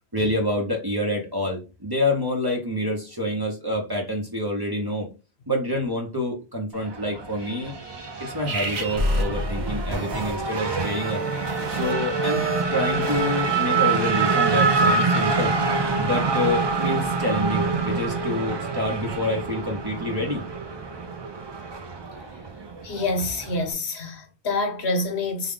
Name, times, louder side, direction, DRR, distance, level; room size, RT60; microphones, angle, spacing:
voice 1, 0.1-5.1 5.5-7.7 8.2-11.2 11.7-12.4 12.7-20.4, left 1 dB, 25° right, 0.9 m, -27 dB
Race car auto racing / Accelerating revving vroom, 6.7-23.7, right 4 dB, 45° right, 0.3 m, -26 dB
sound 1, 8.5-13.9, equal, 75° right, 1.1 m, -30 dB
voice 2, 22.8-25.5, left 2 dB, 75° left, 1.1 m, -27 dB
3.6 x 2.3 x 3.7 m
omnidirectional pair, 1.1 m